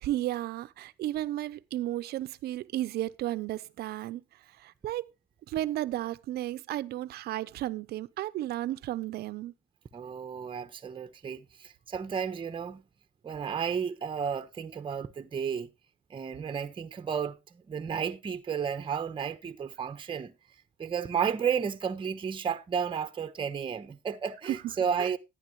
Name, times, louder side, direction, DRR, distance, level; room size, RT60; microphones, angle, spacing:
voice 1, 0.0-4.2 4.6-5.1 5.5-9.5 25.0-25.1, right 14 dB, 70° right, 0.8 m, -33 dB
voice 2, 9.9-12.8 13.2-15.7 16.1-20.3 20.8-25.2, right 7 dB, 30° right, 1.1 m, -32 dB
12.0 x 10.0 x 3.1 m
cardioid pair, 110°, 17 cm